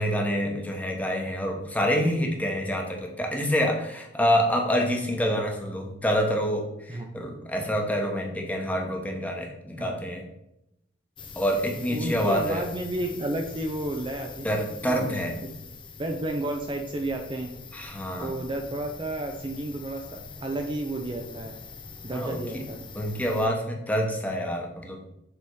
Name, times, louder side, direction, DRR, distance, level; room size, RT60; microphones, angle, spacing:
voice 1, 0.0-10.2 11.4-12.7 14.4-15.4 17.7-18.3 22.1-22.4 22.9-25.0, equal, 10° left, 1 dB, 1.0 m, -27 dB
sound 1, 11.2-23.5, left 4 dB, 25° left, 0.6 m, -43 dB
voice 2, 11.9-15.2 16.0-17.5 18.2-21.6 22.0-22.9, right 1 dB, 25° right, 2 dB, 0.5 m, -32 dB
6.8 x 3.6 x 4.7 m, 0.84 s
head